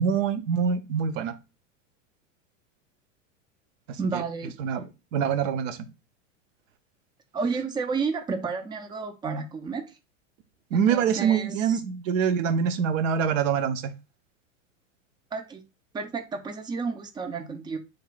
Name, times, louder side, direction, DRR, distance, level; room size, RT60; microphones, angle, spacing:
voice 1, 0.0-1.3 3.9-4.2 4.6-4.8 5.1-5.8 10.7-13.9, right 7 dB, 75° right, 0.7 m, -25 dB
voice 2, 4.0-4.5 7.3-9.9 10.7-11.8 15.3-15.6 15.9-17.8, right 4 dB, 15° right, 0.3 m, -31 dB
3.3 x 2.3 x 3.8 m
hypercardioid pair, 100°, 39 cm